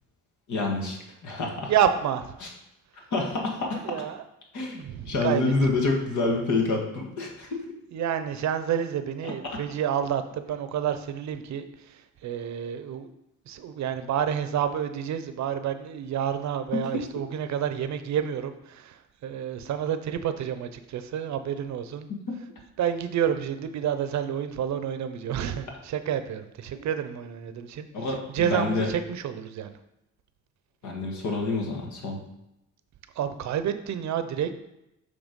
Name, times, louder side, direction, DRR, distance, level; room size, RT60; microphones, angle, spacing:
voice 1, 0.5-1.7 2.4-2.5 2.9-4.0 4.5-7.6 9.2-9.6 16.7-17.0 22.3-22.4 26.7-26.8 27.9-28.9 30.8-32.2, left 3 dB, 75° left, 0 dB, 1.7 m, -28 dB
voice 2, 1.7-2.3 3.8-4.2 4.8-5.5 7.9-13.1 13.5-22.1 22.8-27.9 28.3-29.8 33.2-34.5, right 9 dB, 65° right, 10 dB, 0.7 m, -29 dB
7.1 x 3.4 x 5.2 m, 0.86 s
cardioid pair, 90°, 30 cm